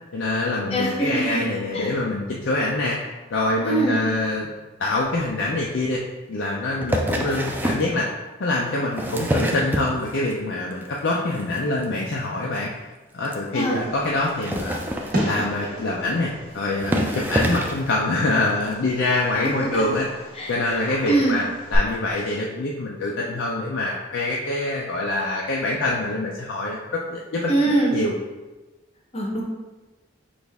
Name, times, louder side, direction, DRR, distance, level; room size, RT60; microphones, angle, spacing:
voice 1, 0.1-3.0 3.3-4.5 4.8-6.0 6.3-8.1 8.4-12.7 13.1-14.8 15.1-20.1 20.5-21.4 21.7-27.5 27.9-28.1, left 2 dB, 75° left, -3 dB, 0.5 m, -25 dB
voice 2, 0.7-1.9 3.6-4.1 13.5-13.8 19.6-19.8 20.3-20.5 21.1-21.4 27.5-28.0 29.1-29.4, right 2 dB, 30° left, -1 dB, 0.8 m, -23 dB
sound 1, 6.8-7.9 8.7-10.3 10.7-11.1 11.4-11.6 11.8-11.9 12.1-12.2 12.6-12.7 13.2-13.3 14.3-15.6 16.4-16.5 16.8-17.9 18.7-18.8, right 1 dB, 10° right, 0.3 m, -26 dB
Fireworks, 13.8-21.8, equal, 50° right, 1.4 m, -35 dB
6.1 x 2.5 x 3.4 m, 1.2 s
head